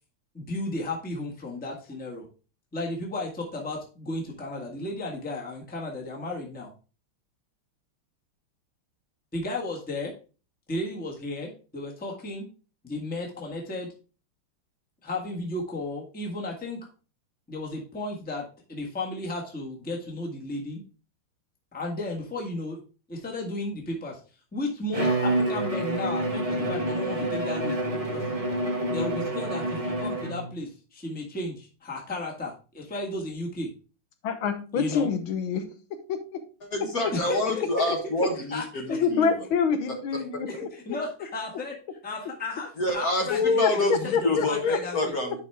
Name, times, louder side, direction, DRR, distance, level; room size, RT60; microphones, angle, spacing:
voice 1, 0.3-2.2 2.7-6.7 9.3-10.1 10.7-12.5 12.8-13.9 15.0-16.9 17.5-20.8 21.7-22.8 23.1-24.2 24.5-28.2 28.9-33.7 34.7-35.1 37.1-37.9 38.3-39.0 40.5-41.8 42.0-45.0, left 2 dB, 5° left, -1 dB, 1.3 m, -34 dB
Bowed string instrument, 24.9-30.6, right 1 dB, 20° right, 1.0 m, -28 dB
voice 2, 34.2-35.6 36.1-36.2 38.9-40.7 43.3-43.7 44.1-45.1, left 6 dB, 75° left, 8 dB, 1.8 m, -26 dB
voice 3, 36.7-39.3 39.9-40.0 40.3-40.4 42.8-43.3 43.6-45.4, left 1 dB, 45° left, 2 dB, 1.7 m, -27 dB
9.9 x 4.3 x 3.4 m, 0.35 s
omnidirectional pair, 2.3 m